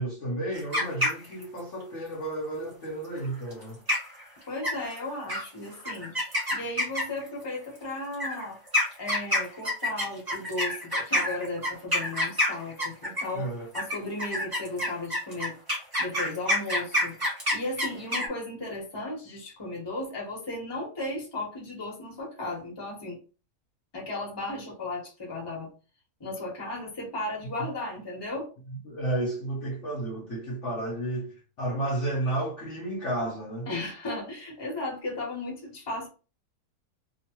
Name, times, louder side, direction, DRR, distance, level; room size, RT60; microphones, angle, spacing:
voice 1, 0.0-3.8 13.3-13.7 27.6-27.7 28.9-33.7, right 1 dB, 60° left, 0.9 m, -32 dB
sound 1, 0.5-1.6 3.5-3.6 3.9-4.2 4.6-5.0 5.3-5.4 5.8-7.3 8.1-13.4 13.7-18.3, left 1 dB, 20° right, 0.8 m, -27 dB
voice 2, 4.5-8.6 9.0-15.6 16.0-17.1 17.5-23.2 23.9-25.7 26.2-28.5 33.7-36.1, left 2 dB, 20° left, 0.9 m, -35 dB
2.9 x 2.1 x 2.9 m
omnidirectional pair, 1.7 m